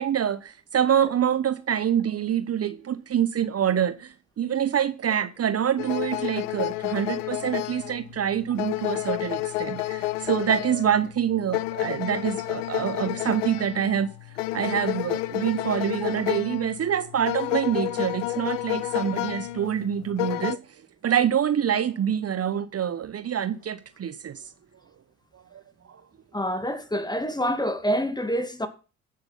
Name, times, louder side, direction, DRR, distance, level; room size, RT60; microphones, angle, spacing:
voice 1, 0.0-14.1 14.5-20.6 21.0-24.5 25.5-25.6 25.9-26.0, right 9 dB, 40° right, 1.0 m, -26 dB
sound 1, 5.8-20.6, left 18 dB, 80° left, 0.6 m, -30 dB
voice 2, 26.3-28.7, equal, 10° left, 2.3 m, -27 dB
15.5 x 6.6 x 5.7 m
hypercardioid pair, 50°, 36 cm